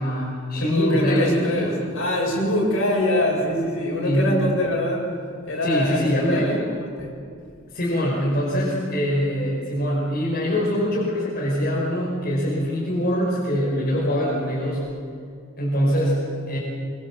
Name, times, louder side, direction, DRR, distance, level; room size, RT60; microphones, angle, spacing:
voice 1, 0.0-1.8 4.0-4.4 5.6-6.6 7.7-14.8 15.6-16.6, equal, 50° left, -4 dB, 5.3 m, -23 dB
voice 2, 0.5-5.1 5.5-7.1, left 1 dB, 70° left, -2 dB, 7.9 m, -24 dB
24.0 x 24.0 x 7.5 m, 2.3 s
head